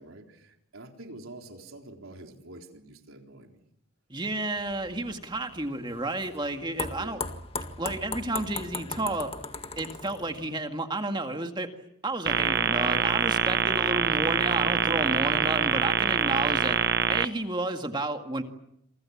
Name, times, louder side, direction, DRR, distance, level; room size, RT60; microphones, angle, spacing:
voice 1, 0.0-3.6 7.0-7.3 14.9-15.1, right 2 dB, 75° right, 3 dB, 3.9 m, -46 dB
voice 2, 4.1-7.2 7.8-9.3 9.8-11.7 12.0-16.8 17.1-18.4, right 2 dB, 20° right, 5 dB, 2.0 m, -31 dB
sound 1, 4.6-10.6, left 4 dB, 25° left, 1.9 m, -38 dB
sound 2, 12.3-17.2, right 7 dB, 50° right, 1.0 m, -25 dB
28.5 x 24.5 x 7.3 m, 0.77 s
head